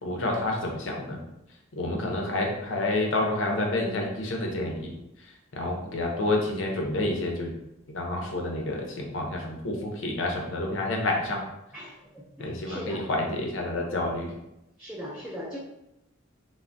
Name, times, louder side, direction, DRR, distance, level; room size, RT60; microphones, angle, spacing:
voice 1, 0.0-1.2 1.8-4.9 5.5-7.5 7.9-11.4 12.4-14.3, left 2 dB, 65° left, 1 dB, 0.6 m, -29 dB
voice 2, 11.7-13.1 14.8-15.6, equal, 5° right, -7 dB, 0.4 m, -39 dB
3.3 x 2.1 x 2.5 m, 0.86 s
head